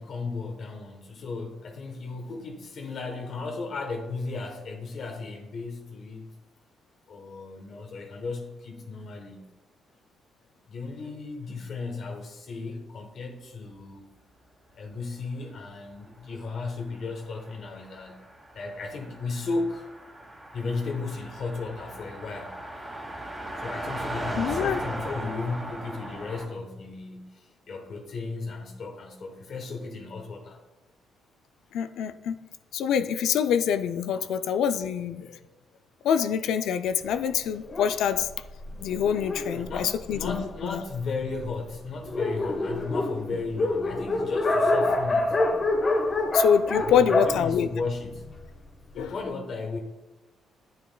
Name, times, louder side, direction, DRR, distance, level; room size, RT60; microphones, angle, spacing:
voice 1, 0.0-6.3 7.1-9.5 10.7-14.0 14.7-18.2 18.5-19.9 20.5-22.5 23.6-30.6 34.2-34.3 39.3-45.4 46.8-48.3 48.9-49.8, left 3 dB, 60° left, 3 dB, 1.0 m, -35 dB
Car passing by, 16.3-26.5, right 1 dB, 10° right, 1.9 m, -38 dB
voice 2, 24.4-24.8 31.7-32.4 32.7-35.4 36.0-38.3 38.8-40.8 46.3-47.7 48.9-49.1, left 8 dB, 80° left, 10 dB, 0.3 m, -25 dB
Dog, 37.7-40.7 41.4-41.5 41.8-41.9 42.0-48.4, left 2 dB, 35° left, 1.1 m, -27 dB
9.1 x 7.7 x 2.2 m, 1.1 s
cardioid pair, 90°, 0 cm